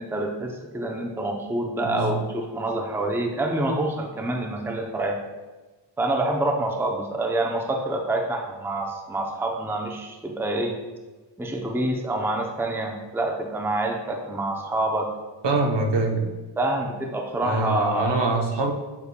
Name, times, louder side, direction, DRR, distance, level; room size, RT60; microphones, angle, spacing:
voice 1, 0.0-5.2 6.0-10.8 11.4-15.1 16.6-18.2, right 2 dB, 5° right, 1 dB, 0.5 m, -27 dB
voice 2, 1.8-2.2 15.4-16.3 17.4-18.7, right 2 dB, 60° right, 2 dB, 0.8 m, -24 dB
7.1 x 6.5 x 2.2 m, 1.2 s
wide cardioid pair, 120°, 48 cm